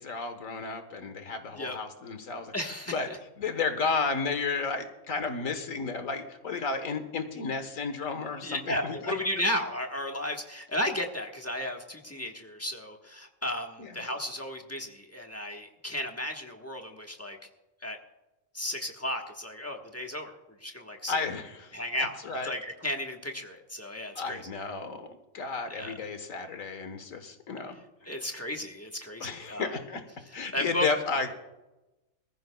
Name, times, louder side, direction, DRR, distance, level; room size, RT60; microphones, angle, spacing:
voice 1, 0.0-2.5 2.9-3.1 3.4-9.1 13.8-14.0 21.1-22.5 24.1-25.1 25.3-27.8 29.2-30.0 30.3-31.3, left 4 dB, 85° left, 8 dB, 1.7 m, -32 dB
voice 2, 2.5-2.9 8.4-17.4 17.8-18.0 18.5-20.3 20.6-21.2 21.7-22.1 22.4-24.4 25.7-25.9 28.0-29.7 30.5-30.9, left 1 dB, 10° left, 2 dB, 1.2 m, -34 dB
21.5 x 14.5 x 2.3 m, 1.0 s
omnidirectional pair, 1.4 m